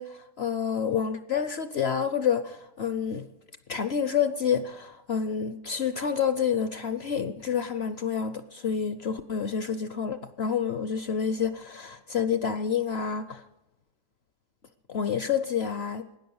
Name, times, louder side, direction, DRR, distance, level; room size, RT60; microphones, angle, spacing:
voice 1, 0.0-3.3 3.7-13.4 14.9-16.1, left 7 dB, 60° left, 12 dB, 0.7 m, -28 dB
16.5 x 10.0 x 7.1 m, 0.97 s
omnidirectional pair, 1.7 m